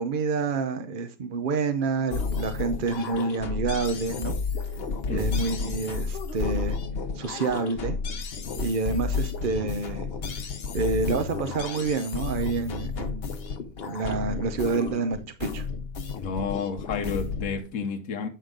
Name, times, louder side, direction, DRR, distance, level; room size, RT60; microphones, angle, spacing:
voice 1, 0.0-4.3 5.1-6.8 7.1-8.0 8.6-10.1 10.7-13.3 13.9-15.6, right 4 dB, 50° right, 0.6 m, -28 dB
sound 1, 2.1-17.6, left 5 dB, 45° left, 1.1 m, -32 dB
voice 2, 5.1-5.5 16.2-18.3, left 5 dB, 70° left, 1.4 m, -31 dB
8.9 x 6.4 x 3.8 m
omnidirectional pair, 1.6 m